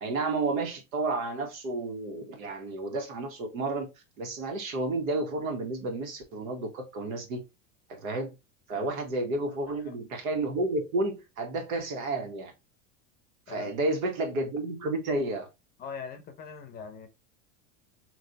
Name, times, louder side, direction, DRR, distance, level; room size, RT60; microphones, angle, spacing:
voice 1, 0.0-3.9 4.2-7.4 7.9-8.3 8.7-12.5 13.5-15.5, right 2 dB, 85° right, 1.5 m, -31 dB
voice 2, 15.8-17.1, left 6 dB, 25° left, 0.6 m, -41 dB
3.2 x 2.6 x 3.9 m
supercardioid pair, 150°, 40 cm